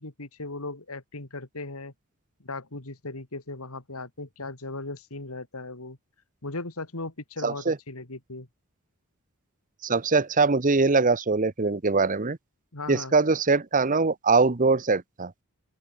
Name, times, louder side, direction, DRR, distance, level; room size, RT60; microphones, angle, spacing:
voice 1, 0.0-1.9 2.4-6.0 6.4-8.5 12.7-13.1, left 2 dB, 75° left, 2.8 m, -37 dB
voice 2, 7.4-7.8 9.8-12.4 12.9-15.3, right 4 dB, 35° right, 0.9 m, -22 dB
open air
head